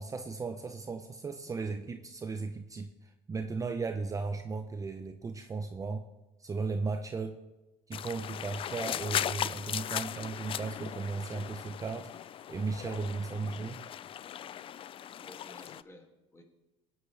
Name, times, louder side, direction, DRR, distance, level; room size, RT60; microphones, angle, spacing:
voice 1, 0.0-6.0 6.4-7.4 7.9-13.8, right 4 dB, 20° right, 6 dB, 0.6 m, -36 dB
sound 1, 7.9-15.8, left 10 dB, 35° left, 0.4 m, -38 dB
voice 2, 13.3-13.7 15.2-16.4, left 1 dB, 20° left, 2 dB, 2.3 m, -55 dB
19.0 x 9.8 x 3.3 m, 1.1 s
supercardioid pair, 100°, 15 cm